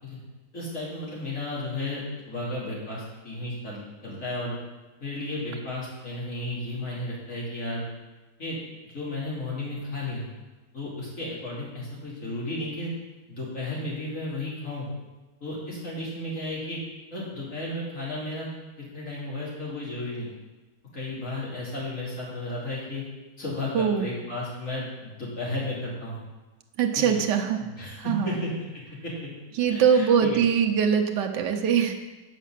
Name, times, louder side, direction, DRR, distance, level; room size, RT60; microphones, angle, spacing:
voice 1, 0.5-4.6 5.0-7.8 8.4-8.6 8.8-10.3 10.7-12.9 13.3-14.9 15.4-16.8 17.1-18.5 18.8-20.3 20.9-23.0 23.4-26.2 26.9-27.1 27.6-28.5 29.0-29.1 29.7-30.4, left 2 dB, 50° left, -6 dB, 3.3 m, -33 dB
voice 2, 23.7-24.1 26.8-27.6 28.0-28.4 29.6-31.9, right 7 dB, 85° right, 4 dB, 1.4 m, -22 dB
8.2 x 5.1 x 7.4 m, 1.2 s
omnidirectional pair, 1.8 m